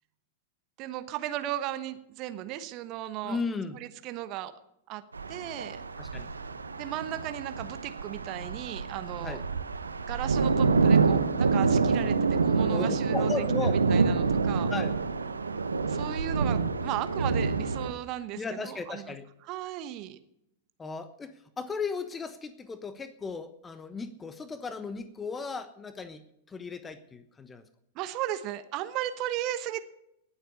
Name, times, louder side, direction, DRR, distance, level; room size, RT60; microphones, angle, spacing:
voice 1, 0.8-3.4 3.7-4.5 4.9-5.0 5.3-5.8 6.8-9.4 10.0-12.2 12.4-13.3 13.6-14.7 15.9-19.2 19.4-20.2 27.9-29.8, right 13 dB, 40° right, 12 dB, 1.1 m, -36 dB
voice 2, 3.2-3.8 6.0-6.3 9.2-9.4 12.7-13.7 14.7-14.9 18.3-19.2 20.8-27.7, left 4 dB, 15° left, 12 dB, 1.1 m, -36 dB
sound 1, 5.1-17.9, right 4 dB, 80° right, 1.0 m, -27 dB
18.5 x 8.0 x 6.8 m, 0.78 s
figure-of-eight pair, 95°, 0 cm